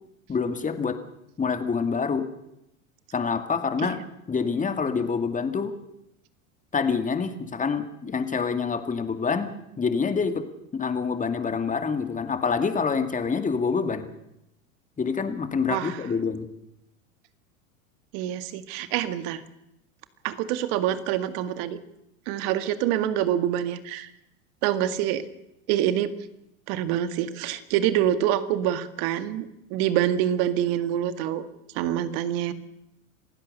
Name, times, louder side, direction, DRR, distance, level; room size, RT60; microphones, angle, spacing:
voice 1, 0.3-1.0 1.4-2.3 3.1-4.0 4.3-5.7 6.7-9.5 9.8-10.4 10.7-14.1 15.0-16.5, left 5 dB, 20° left, 8 dB, 2.3 m, -26 dB
voice 2, 15.7-16.0 18.1-19.4 20.2-21.8 22.3-24.1 24.6-25.2 25.7-26.1 26.7-31.5 31.7-32.5, right 11 dB, 55° right, 12 dB, 2.0 m, -26 dB
27.0 x 16.0 x 6.7 m, 0.85 s
hypercardioid pair, 100°, 41 cm